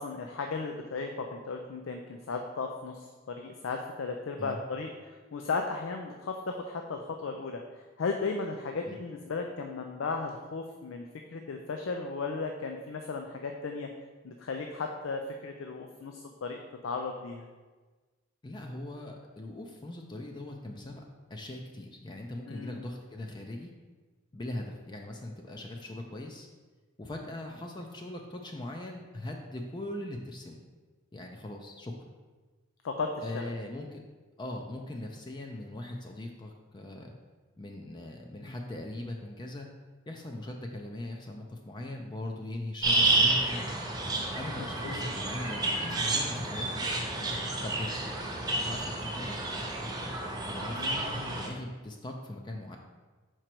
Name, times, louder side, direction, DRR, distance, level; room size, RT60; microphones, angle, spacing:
voice 1, 0.0-11.1 11.3-13.9 14.2-17.5 22.5-22.8 32.8-33.5 44.6-45.1 50.8-51.4, left 4 dB, 80° left, 3 dB, 0.5 m, -36 dB
voice 2, 18.4-21.0 21.3-23.7 24.3-26.5 27.0-30.6 31.1-31.9 33.2-34.0 34.4-37.1 37.6-39.7 40.1-43.7 44.3-46.8 47.6-47.9 48.6-49.7 50.4-51.0 51.3-52.8, left 1 dB, 25° left, 2 dB, 0.4 m, -40 dB
sound 1, 42.8-51.5, right 2 dB, 20° right, 0.8 m, -30 dB
5.0 x 4.5 x 4.5 m, 1.3 s
head